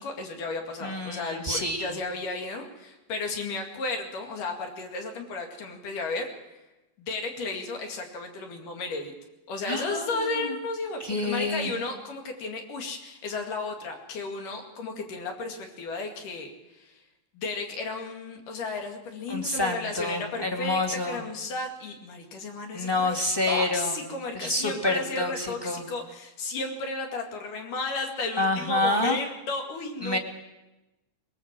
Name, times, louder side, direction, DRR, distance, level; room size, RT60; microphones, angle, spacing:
voice 1, 0.0-6.6 7.0-9.1 9.5-17.0 17.3-23.2 23.5-30.2, left 3 dB, 75° left, 3 dB, 3.8 m, -34 dB
voice 2, 0.8-2.0 9.6-10.5 11.0-11.7 19.3-21.2 22.7-24.0 24.4-25.8 28.4-29.2 30.0-30.2, left 2 dB, 10° left, 2 dB, 1.3 m, -28 dB
21.0 x 20.5 x 7.4 m, 1.0 s
omnidirectional pair, 3.8 m